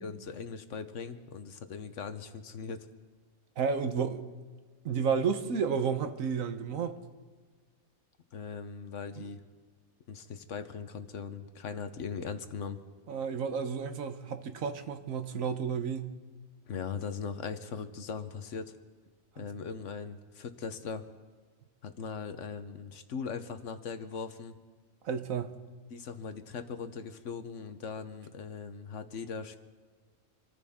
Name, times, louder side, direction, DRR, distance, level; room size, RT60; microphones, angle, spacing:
voice 1, 0.0-2.9 8.3-9.4 10.1-12.8 16.7-18.8 19.4-21.1 21.8-24.5 25.9-29.6, left 5 dB, 65° left, 9 dB, 1.2 m, -39 dB
voice 2, 3.6-4.2 4.8-7.0 9.2-9.3 13.1-16.2 19.4-19.5 25.0-25.5, right 6 dB, 75° right, 9 dB, 1.3 m, -31 dB
26.5 x 14.0 x 3.6 m, 1.5 s
omnidirectional pair, 1.4 m